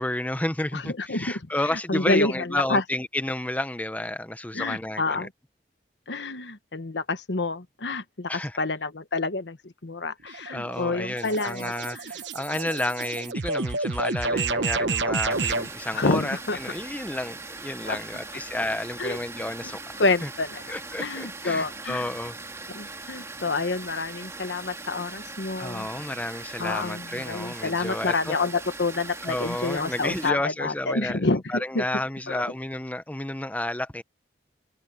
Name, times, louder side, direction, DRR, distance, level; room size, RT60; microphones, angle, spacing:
voice 1, 0.0-5.3 8.3-8.6 10.5-20.3 20.7-22.4 25.6-28.3 29.2-34.0, left 1 dB, 10° left, 0.8 m, -31 dB
voice 2, 0.7-1.4 1.7-2.8 4.5-5.3 6.1-12.0 15.9-16.6 17.8-18.0 19.0-19.2 20.0-22.1 22.7-25.9 26.6-31.8 32.3-32.4, left 3 dB, 80° left, 1.3 m, -28 dB
sound 1, 10.3-15.7, right 3 dB, 85° right, 1.1 m, -29 dB
Water, 15.3-30.3, right 3 dB, 15° right, 2.7 m, -40 dB
open air
head